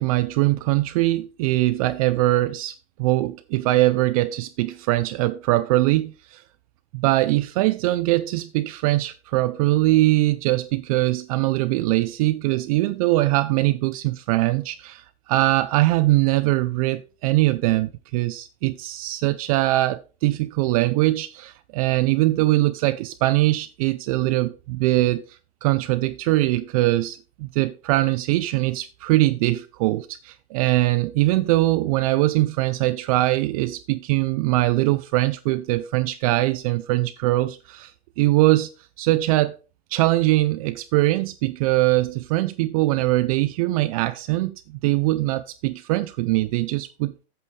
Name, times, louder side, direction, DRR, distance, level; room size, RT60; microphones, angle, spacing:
voice 1, 0.0-6.4 6.9-38.7 39.0-39.6 39.9-47.2, right 18 dB, 35° right, 0.4 m, -22 dB
8.4 x 6.8 x 5.1 m
hypercardioid pair, 145°, 33 cm